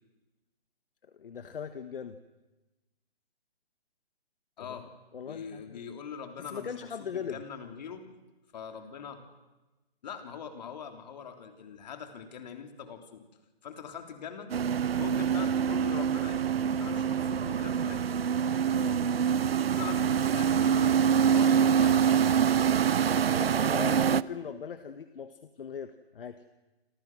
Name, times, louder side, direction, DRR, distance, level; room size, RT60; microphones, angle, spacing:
voice 1, 1.1-2.2 5.1-5.8 6.4-7.4 18.7-19.0 23.3-26.4, left 7 dB, 60° left, 10 dB, 1.5 m, -39 dB
voice 2, 4.6-4.9 5.3-6.7 7.0-8.0 8.5-9.3 10.0-13.2 13.6-14.5 14.9-16.4 16.8-18.1 19.5-22.7, left 7 dB, 45° left, 6 dB, 3.6 m, -43 dB
sound 1, 14.5-24.2, right 8 dB, 70° right, 0.8 m, -25 dB
28.0 x 27.5 x 6.3 m, 1.1 s
hypercardioid pair, 160°, 31 cm